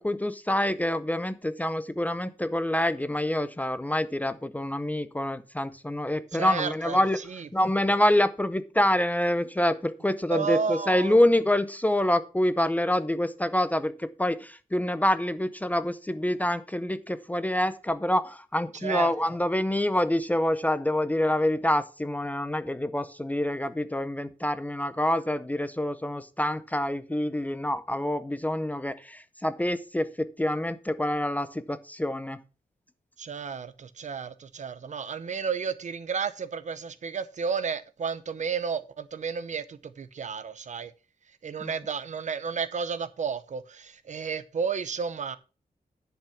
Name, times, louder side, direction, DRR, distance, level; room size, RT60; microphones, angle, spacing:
voice 1, 0.0-7.2 7.5-32.4 41.6-41.7, left 1 dB, 10° left, 0.5 m, -26 dB
voice 2, 6.3-7.0 7.3-7.5 10.3-11.2 18.8-19.1 33.2-40.9 41.4-45.4, right 6 dB, 50° right, 0.8 m, -32 dB
10.5 x 5.8 x 5.7 m
wide cardioid pair, 170°, 15 cm